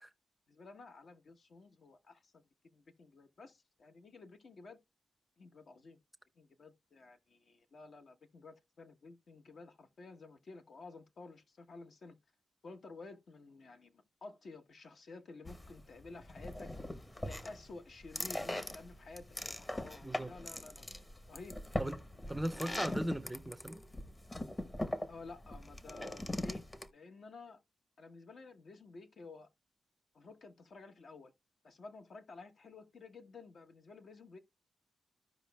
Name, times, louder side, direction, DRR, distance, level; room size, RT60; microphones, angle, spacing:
voice 1, 0.5-2.4 2.7-4.8 5.4-6.0 6.4-12.2 12.6-16.7 17.2-20.9 21.3-21.6 25.1-26.6 26.9-27.6 28.0-29.5 30.1-31.3 31.6-34.4, left 3 dB, 60° left, 1.1 m, -52 dB
sound 1, 15.5-26.9, left 1 dB, 25° left, 0.9 m, -41 dB
voice 2, 20.0-20.3 21.8-23.8, right 1 dB, 10° right, 0.6 m, -38 dB
14.5 x 5.1 x 2.3 m
cardioid pair, 75°, 0 cm